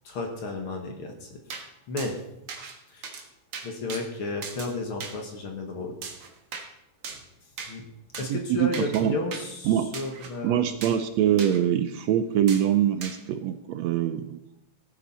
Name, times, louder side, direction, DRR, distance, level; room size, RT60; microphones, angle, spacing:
voice 1, 0.1-1.4 1.9-2.2 2.9-3.1 3.6-6.0 7.7-7.8 8.2-10.8, left 2 dB, 50° left, 3 dB, 1.9 m, -33 dB
sound 1, 1.5-1.6 2.0-2.1 2.5-2.7 3.0-3.2 3.5-4.0 4.4-4.7 5.0-5.1 6.0-6.7 7.0-7.2 7.6-7.7 8.1-8.3 8.7-9.0 9.3-9.4 9.9-10.3 10.8-11.0 11.4-11.6 12.5-12.6 13.0-13.2, right 5 dB, 50° right, 2.1 m, -37 dB
voice 2, 8.3-9.2 9.7-9.9 10.4-14.4, right 10 dB, 75° right, 10 dB, 1.7 m, -24 dB
16.0 x 9.4 x 4.2 m, 0.84 s
omnidirectional pair, 3.4 m